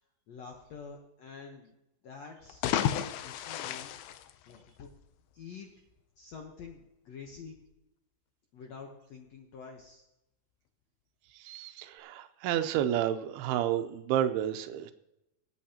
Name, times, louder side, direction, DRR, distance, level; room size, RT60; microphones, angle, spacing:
voice 1, 0.3-1.7 2.0-4.0 4.5-4.9 5.3-5.7 6.2-7.6 8.5-10.0, left 5 dB, 65° left, 1 dB, 1.7 m, -47 dB
sound 1, 2.4-5.0, left 11 dB, 80° left, 2.6 m, -33 dB
voice 2, 11.3-14.9, right 11 dB, 85° right, 8 dB, 2.7 m, -30 dB
24.0 x 8.5 x 2.9 m, 0.91 s
omnidirectional pair, 4.4 m